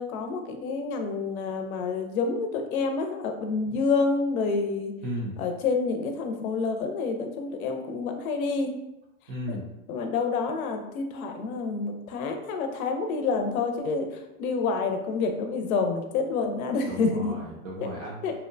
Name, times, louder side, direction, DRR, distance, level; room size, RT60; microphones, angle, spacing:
voice 1, 0.0-5.0 5.4-8.7 9.5-9.6 9.9-17.4 18.2-18.3, left 4 dB, 70° left, 5 dB, 0.6 m, -28 dB
voice 2, 5.0-5.4 9.3-9.7 16.9-18.2, equal, 40° right, -3 dB, 0.5 m, -35 dB
2.7 x 2.1 x 2.5 m, 0.91 s
supercardioid pair, 150°, 43 cm